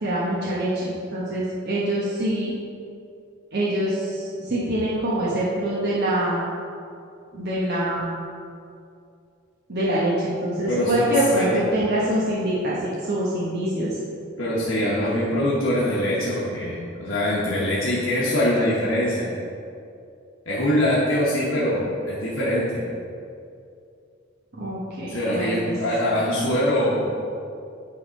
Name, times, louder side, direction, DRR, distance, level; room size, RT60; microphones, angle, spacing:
voice 1, 0.0-2.5 3.5-6.5 7.3-8.2 9.7-12.8 13.1-13.9 24.6-25.8, right 1 dB, 55° right, -7 dB, 1.1 m, -25 dB
voice 2, 10.7-11.6 14.4-19.3 20.4-22.8 25.1-27.1, left 1 dB, 70° left, -7 dB, 1.2 m, -23 dB
9.2 x 3.7 x 5.2 m, 2.5 s
head